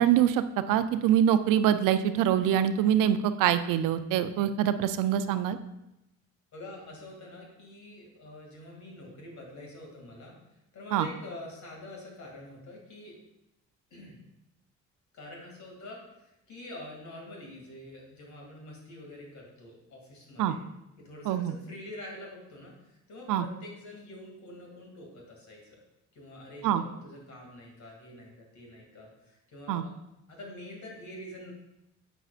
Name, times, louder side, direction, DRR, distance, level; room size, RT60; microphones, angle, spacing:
voice 1, 0.0-5.6 10.9-11.1 20.4-20.5 21.3-21.5 23.3-23.4 26.6-26.8 29.7-29.8, right 10 dB, 85° right, 11 dB, 0.5 m, -24 dB
voice 2, 6.5-10.4 10.7-13.2 13.9-14.2 15.1-20.6 21.0-25.8 26.1-29.9 30.3-31.5, left 1 dB, 65° left, -1 dB, 2.4 m, -46 dB
7.9 x 5.9 x 2.4 m, 0.89 s
cardioid pair, 75°, 31 cm